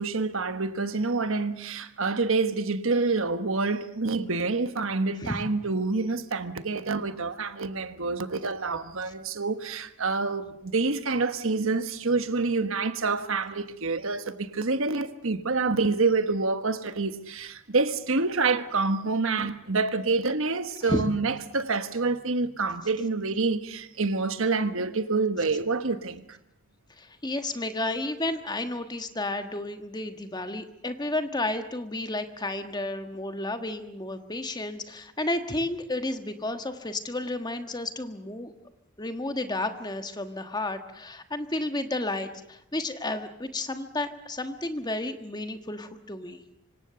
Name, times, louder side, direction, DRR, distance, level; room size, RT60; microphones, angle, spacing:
voice 1, 0.0-26.2, right 3 dB, 60° right, 1.3 m, -27 dB
voice 2, 27.0-38.5 39.0-46.4, left 2 dB, 20° left, 1.4 m, -32 dB
25.5 x 25.5 x 6.9 m
head